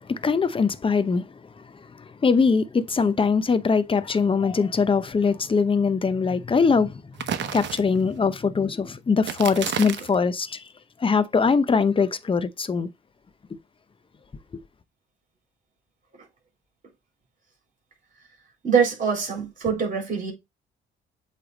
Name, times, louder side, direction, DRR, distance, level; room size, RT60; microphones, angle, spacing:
voice 1, 0.1-1.3 1.6-1.7 2.0-7.0 7.5-10.6 11.0-12.9, left 5 dB, 25° left, 0.7 m, -22 dB
sound 1, 7.2-8.2 9.2-10.2, right 9 dB, 65° right, 0.9 m, -31 dB
voice 2, 18.6-20.3, right 6 dB, 40° right, 3.9 m, -23 dB
7.8 x 3.4 x 4.0 m
cardioid pair, 90°, 20 cm